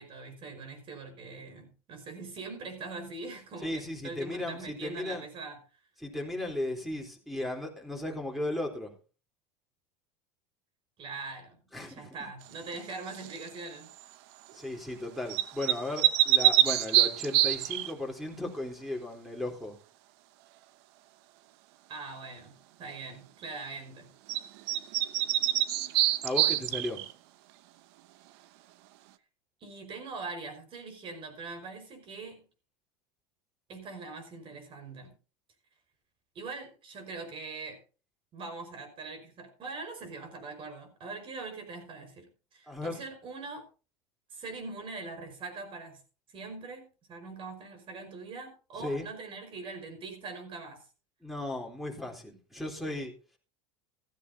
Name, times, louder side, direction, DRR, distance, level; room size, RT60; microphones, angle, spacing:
voice 1, 0.0-5.6 11.0-13.9 21.9-24.1 29.6-32.4 33.7-35.1 36.4-37.8 38.3-43.7 44.3-46.0 46.3-50.8, right 3 dB, 40° right, 6 dB, 5.1 m, -42 dB
voice 2, 3.6-5.2 6.0-8.9 11.7-12.1 14.5-19.8 26.2-27.0 42.7-43.0 48.8-49.1 51.2-53.1, left 1 dB, ahead, 3 dB, 3.8 m, -36 dB
sound 1, 13.1-13.5 15.3-17.9 24.3-24.4 24.7-27.1, right 14 dB, 70° right, 0.9 m, -25 dB
15.0 x 14.0 x 2.8 m, 0.35 s
supercardioid pair, 125°, 14 cm